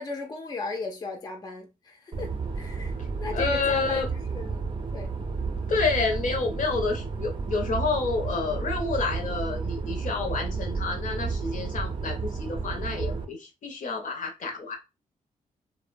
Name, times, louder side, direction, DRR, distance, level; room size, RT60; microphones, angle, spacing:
voice 1, 0.0-4.6 4.9-5.1, left 4 dB, 25° left, 0.4 m, -37 dB
sound 1, 2.1-13.2, right 4 dB, 35° right, 0.4 m, -32 dB
voice 2, 3.3-4.1 5.7-14.8, left 4 dB, 60° left, 0.7 m, -29 dB
2.7 x 2.1 x 2.5 m
cardioid pair, 95°, 15 cm